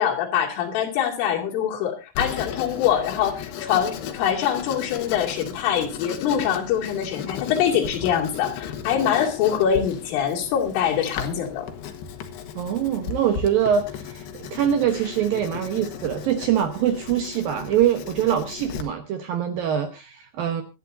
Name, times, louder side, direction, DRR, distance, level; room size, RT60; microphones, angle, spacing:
voice 1, 0.0-11.7, left 9 dB, 90° left, 0 dB, 5.1 m, -24 dB
Writing, 2.2-18.8, left 8 dB, 70° left, 3.2 m, -36 dB
voice 2, 12.6-20.6, right 9 dB, 75° right, 6 dB, 2.2 m, -24 dB
25.0 x 9.9 x 2.7 m, 0.28 s
omnidirectional pair, 5.5 m